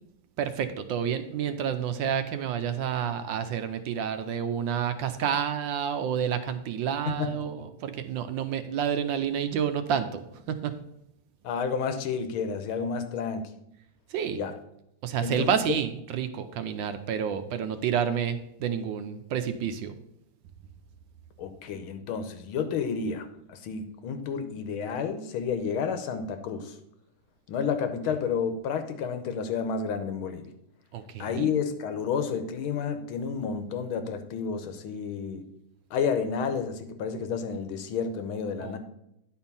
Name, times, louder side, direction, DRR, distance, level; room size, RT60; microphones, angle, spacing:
voice 1, 0.4-10.8 14.1-14.4 15.0-20.0 30.9-31.5 38.6-38.8, right 8 dB, 70° right, 9 dB, 1.3 m, -29 dB
voice 2, 11.4-13.4 14.4-14.5 15.2-15.5 21.4-26.8 27.5-30.5 31.2-35.5 35.9-38.8, left 6 dB, 85° left, 8 dB, 1.7 m, -30 dB
9.9 x 4.4 x 5.5 m, 0.80 s
omnidirectional pair, 2.3 m